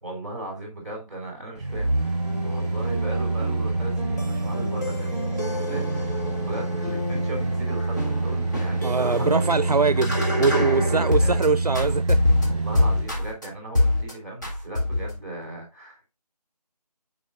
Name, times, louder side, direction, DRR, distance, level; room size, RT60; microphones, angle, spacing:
voice 1, 0.0-9.5 10.8-11.4 12.4-16.1, right 1 dB, 25° right, 2.9 m, -37 dB
sound 1, 1.5-13.1 13.5-13.6, right 2 dB, 45° right, 1.1 m, -27 dB
sound 2, 1.7-11.5 11.7-13.5 13.8-14.1 14.4-15.2, left 1 dB, 25° left, 1.7 m, -27 dB
voice 2, 8.8-12.2, right 4 dB, 70° right, 0.5 m, -23 dB
8.5 x 4.9 x 2.4 m
figure-of-eight pair, 180°, 21 cm